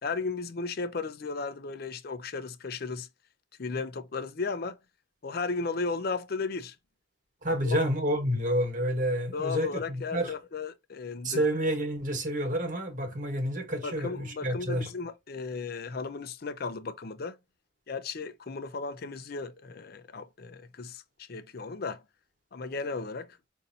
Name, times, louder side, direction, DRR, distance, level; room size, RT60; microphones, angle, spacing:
voice 1, 0.0-3.1 3.6-4.8 5.2-6.8 7.6-7.8 9.3-11.4 13.8-17.4 17.9-22.0 22.5-23.4, left 4 dB, 50° left, 0.5 m, -35 dB
voice 2, 7.4-10.3 11.2-14.9, equal, 40° right, 1.2 m, -29 dB
5.3 x 2.6 x 2.6 m
head